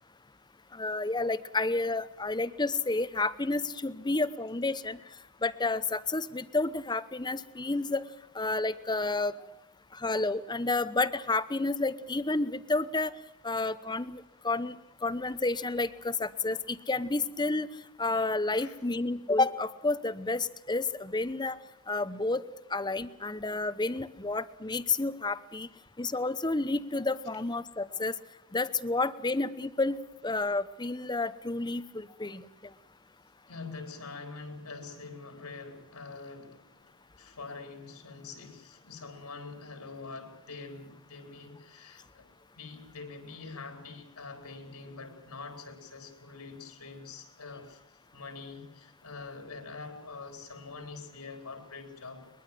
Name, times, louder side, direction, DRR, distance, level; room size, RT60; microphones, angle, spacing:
voice 1, 0.7-5.0 5.4-8.0 8.3-9.4 9.9-13.1 13.4-14.8 15.0-17.7 18.0-21.6 21.9-22.4 22.7-25.7 26.0-28.1 28.5-30.0 30.2-32.4, left 3 dB, 20° left, 14 dB, 0.9 m, -30 dB
voice 2, 18.5-18.8 33.5-42.3 42.6-52.3, left 4 dB, 85° left, 5 dB, 4.2 m, -45 dB
22.5 x 21.5 x 7.5 m, 0.84 s
head